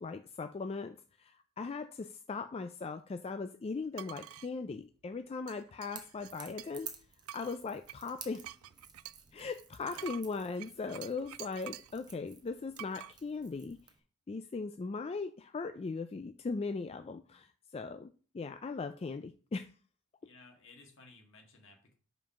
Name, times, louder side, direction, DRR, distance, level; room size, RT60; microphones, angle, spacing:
voice 1, 0.0-6.9 7.3-8.4 9.3-13.8 14.3-18.1 18.3-19.7, left 4 dB, 25° left, 9 dB, 0.3 m, -39 dB
sound 1, 3.9-4.5 5.5-6.9 7.3-12.0 12.8-13.1, right 13 dB, 70° right, 0.3 m, -48 dB
Crackle / Crack, 5.9-14.0, right 6 dB, 20° right, 0.9 m, -53 dB
voice 2, 20.2-21.9, left 3 dB, 60° left, 2 dB, 2.0 m, -57 dB
5.3 x 5.2 x 5.8 m, 0.39 s
head